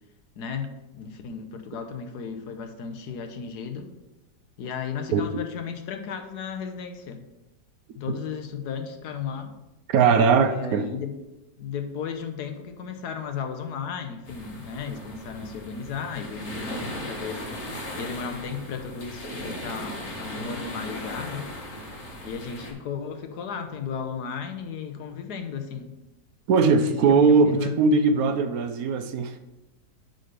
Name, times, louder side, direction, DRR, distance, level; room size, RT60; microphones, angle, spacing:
voice 1, 0.4-3.9 4.6-7.2 7.9-9.5 10.3-11.1 11.6-17.4 17.9-21.5 22.2-26.0 26.7-27.8, left 6 dB, 75° left, 7 dB, 1.4 m, -34 dB
voice 2, 9.9-10.9 26.5-29.4, right 5 dB, 70° right, 9 dB, 1.0 m, -20 dB
sound 1, 14.2-22.7, left 1 dB, 45° left, 1.7 m, -37 dB
7.8 x 4.0 x 6.6 m, 1.0 s
omnidirectional pair, 1.7 m